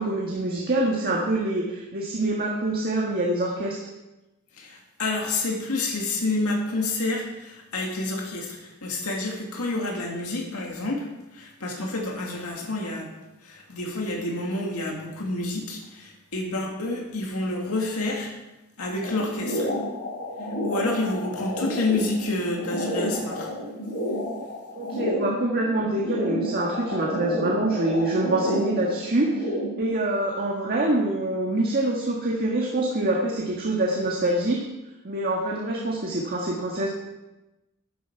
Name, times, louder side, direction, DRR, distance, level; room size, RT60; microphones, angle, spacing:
voice 1, 0.0-3.8 24.8-29.5 29.8-34.6 35.0-36.9, right 2 dB, 45° right, -2 dB, 1.6 m, -25 dB
voice 2, 4.6-11.1 11.3-13.1 13.4-18.3 18.8-19.7 20.6-23.5, left 2 dB, 75° left, 0 dB, 2.1 m, -29 dB
sound 1, 19.0-29.8, equal, 50° left, 4.0 m, -30 dB
13.0 x 10.0 x 4.6 m, 1.0 s
head